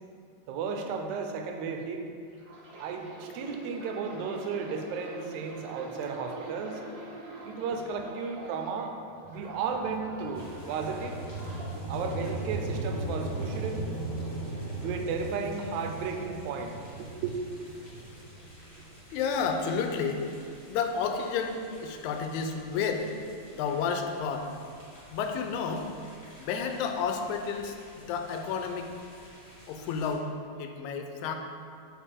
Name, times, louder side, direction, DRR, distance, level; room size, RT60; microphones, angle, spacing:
voice 1, 0.5-2.0 2.8-6.8 7.4-9.0 9.3-11.2 11.9-13.8 14.8-17.3 17.8-18.1, right 5 dB, 85° right, 4 dB, 1.9 m, -34 dB
sound 1, 2.3-8.8 9.2-11.7 12.4-12.6, right 2 dB, 65° right, 1.7 m, -45 dB
sound 2, 9.2-19.5, right 2 dB, 45° right, 1.0 m, -37 dB
sound 3, 10.3-30.2, equal, 45° left, 0.5 m, -53 dB
voice 2, 19.1-20.2 20.7-23.1 23.5-24.5 25.1-25.9 26.4-28.9 29.7-30.3 30.6-31.4, left 5 dB, 85° left, 5 dB, 1.9 m, -31 dB
7.4 x 4.3 x 3.6 m, 2.4 s
omnidirectional pair, 3.3 m